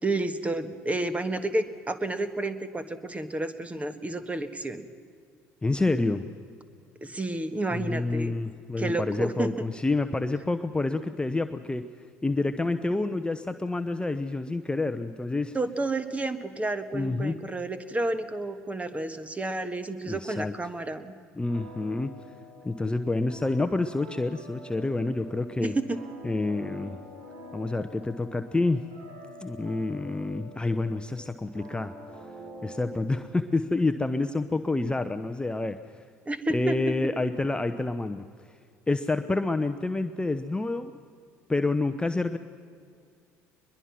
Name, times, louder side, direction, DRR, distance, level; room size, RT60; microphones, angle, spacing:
voice 1, 0.0-4.8 7.0-8.3 8.8-9.7 15.5-21.1 25.6-26.0 36.2-36.9, right 2 dB, 15° right, 11 dB, 1.6 m, -30 dB
voice 2, 5.6-6.3 7.7-11.8 12.2-15.6 16.9-17.4 20.1-20.5 21.4-22.1 22.6-25.7 26.2-27.0 27.5-28.9 29.4-31.9 32.6-35.8 36.5-38.2 38.9-40.9 41.5-42.4, left 2 dB, 10° left, 8 dB, 0.9 m, -28 dB
sound 1, 21.5-33.9, equal, 70° right, 7.4 m, -47 dB
22.0 x 22.0 x 6.0 m, 2.2 s
hypercardioid pair, 60°, 8 cm